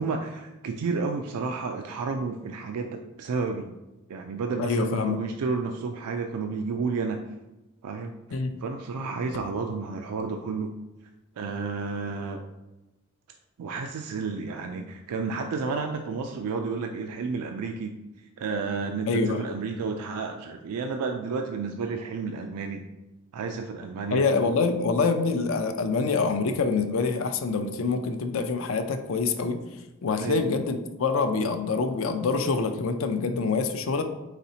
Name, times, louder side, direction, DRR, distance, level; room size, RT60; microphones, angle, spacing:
voice 1, 0.0-3.7 4.1-7.2 7.8-8.1 8.6-10.8 11.4-12.4 13.6-18.0 18.4-22.8 23.3-24.3 30.2-30.5, right 4 dB, 90° right, 5 dB, 0.3 m, -31 dB
voice 2, 4.6-5.2 8.3-8.5 19.1-19.4 24.1-29.6 30.0-34.0, left 4 dB, 65° left, 8 dB, 0.4 m, -26 dB
4.1 x 4.0 x 2.7 m, 1.0 s
head